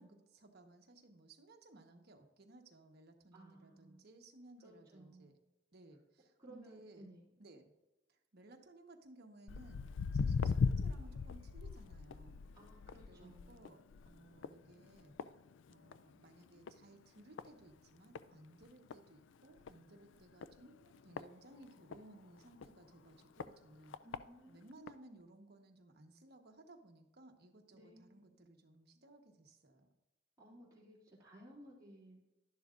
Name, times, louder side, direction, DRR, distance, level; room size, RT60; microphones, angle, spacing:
voice 1, 0.0-5.4 5.7-7.1 7.4-7.7 8.1-9.9 10.1-12.4 13.1-13.8 14.1-15.2 15.7-24.0 24.5-29.9, right 2 dB, 55° right, 4 dB, 1.1 m, -60 dB
voice 2, 3.3-4.0 4.6-5.3 6.4-7.3 12.5-13.7 24.0-24.9 27.7-28.3 30.4-32.2, right 1 dB, 20° right, -8 dB, 2.5 m, -58 dB
Walk footsteps, 9.5-16.1 16.5-16.8 17.4-17.5 18.1-18.2 18.6-18.7 18.9-19.0 19.6-19.8 20.4-22.0 22.6-22.7 23.4-23.5 23.9-24.2 24.9-25.0, left 5 dB, 75° left, 0.4 m, -38 dB
11.5 x 11.0 x 2.5 m, 1.0 s
head